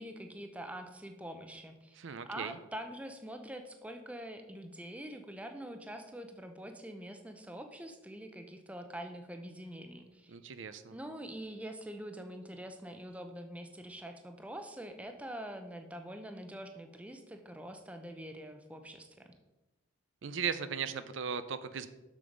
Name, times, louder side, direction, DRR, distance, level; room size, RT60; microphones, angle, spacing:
voice 1, 0.0-10.4 10.9-19.3, right 1 dB, 5° right, 5 dB, 0.6 m, -45 dB
voice 2, 2.0-2.6 10.3-10.9 20.2-21.9, right 6 dB, 70° right, 12 dB, 0.5 m, -37 dB
7.0 x 6.9 x 5.1 m, 1.1 s
head